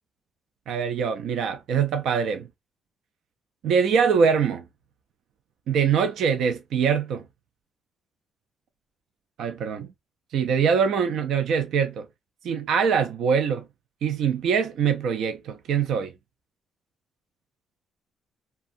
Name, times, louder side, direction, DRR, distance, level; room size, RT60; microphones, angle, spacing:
voice 1, 0.7-2.5 3.6-4.6 5.7-7.2 9.4-9.9 10.3-12.1 12.4-13.6 14.0-16.1, right 6 dB, 70° right, 0.3 m, -23 dB
2.6 x 2.2 x 2.5 m
cardioid pair, 130°, 0 cm